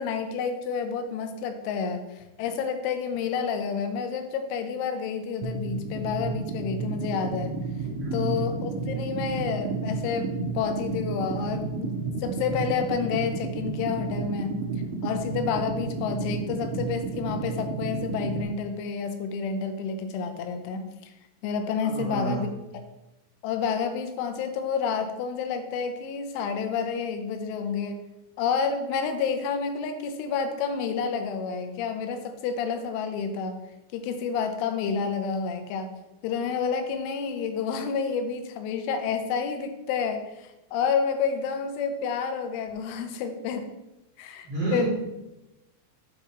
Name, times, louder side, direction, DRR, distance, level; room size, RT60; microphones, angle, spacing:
voice 1, 0.0-7.5 8.1-14.6 15.0-21.1 21.4-22.5 22.7-22.8 23.4-28.0 28.4-33.6 33.9-35.9 36.2-43.7 44.2-44.9, left 6 dB, 85° left, 7 dB, 3.1 m, -29 dB
sound 1, 5.4-18.4, right 4 dB, 85° right, 3.1 m, -32 dB
voice 2, 8.0-8.3 21.8-22.5 44.4-44.9, right 1 dB, 30° right, -7 dB, 3.3 m, -30 dB
9.0 x 7.5 x 3.1 m, 0.95 s
omnidirectional pair, 5.6 m